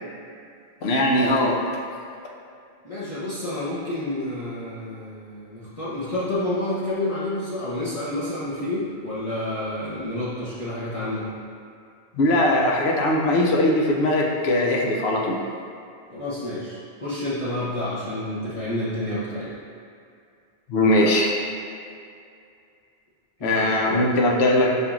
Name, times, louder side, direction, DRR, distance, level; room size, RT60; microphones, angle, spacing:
voice 1, 0.8-1.6 12.1-15.4 20.7-21.3 23.4-24.9, left 1 dB, 75° left, -1 dB, 0.8 m, -20 dB
voice 2, 2.8-11.3 16.1-19.5 23.4-24.0, left 1 dB, 40° left, -11 dB, 0.6 m, -29 dB
5.3 x 2.9 x 2.4 m, 2.4 s
omnidirectional pair, 1.1 m